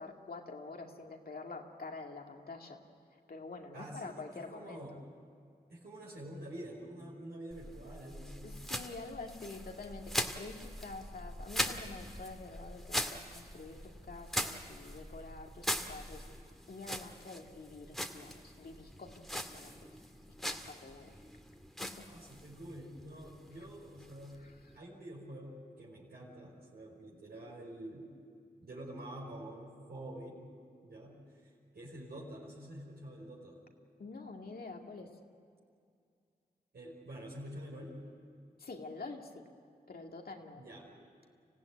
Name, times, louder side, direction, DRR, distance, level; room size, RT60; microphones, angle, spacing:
voice 1, 0.0-2.8 3.3-5.0 8.4-16.2 16.7-19.7 20.4-21.1 21.8-21.9 24.4-24.5 34.0-35.1 38.6-39.4 39.9-40.6, left 3 dB, 65° left, 2 dB, 2.3 m, -47 dB
voice 2, 3.7-5.0 5.7-8.6 22.1-24.4 24.7-28.1 28.6-30.4 30.8-33.6 36.7-38.0 40.5-40.8, right 1 dB, 75° right, -6 dB, 5.3 m, -47 dB
sound 1, 7.5-24.8, equal, ahead, 1.9 m, -41 dB
26.0 x 15.5 x 9.7 m, 2.4 s
cardioid pair, 40°, 17 cm